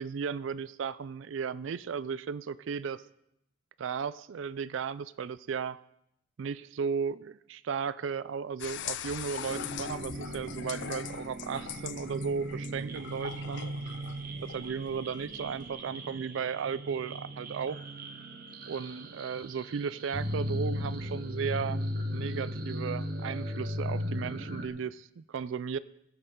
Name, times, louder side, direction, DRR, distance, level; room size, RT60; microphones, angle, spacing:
voice 1, 0.0-3.0 3.8-5.8 6.4-13.7 14.4-17.8 18.7-21.8 22.1-25.8, right 6 dB, 70° right, 17 dB, 0.4 m, -35 dB
sound 1, 8.6-15.8, left 9 dB, 60° left, 0.4 m, -42 dB
sound 2, 9.5-24.7, equal, 45° right, 1.0 m, -37 dB
17.0 x 7.8 x 3.7 m, 0.81 s
head